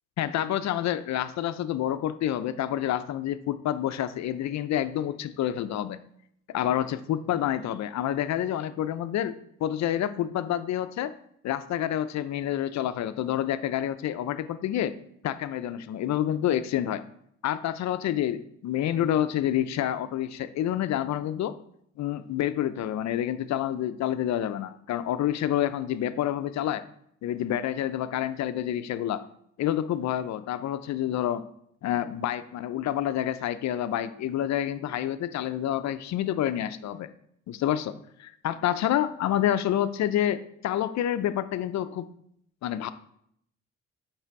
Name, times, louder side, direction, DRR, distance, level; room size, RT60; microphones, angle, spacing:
voice 1, 0.2-6.0 6.5-11.1 11.4-14.9 15.2-17.0 17.4-21.6 22.0-26.8 27.2-29.2 29.6-31.4 31.8-37.1 37.5-42.1 42.6-42.9, left 11 dB, 65° left, 12 dB, 0.5 m, -28 dB
8.4 x 3.3 x 4.6 m, 0.70 s
cardioid pair, 90°, 30 cm